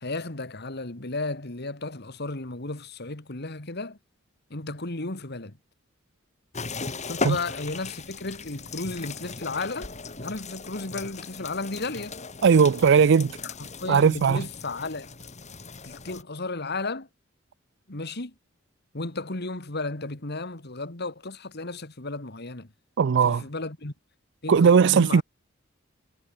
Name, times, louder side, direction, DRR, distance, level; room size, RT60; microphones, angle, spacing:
voice 1, 0.0-4.0 4.5-5.6 7.1-9.9 10.2-12.2 13.4-15.1 15.8-17.1 17.9-18.3 18.9-22.7 23.2-23.9 24.4-25.2, left 3 dB, 55° left, 2.3 m, -34 dB
sound 1, 6.5-16.2, left 4 dB, 35° left, 3.1 m, -37 dB
voice 2, 12.4-13.3 13.9-14.4 23.0-23.4 24.5-25.2, right 6 dB, 60° right, 0.4 m, -18 dB
head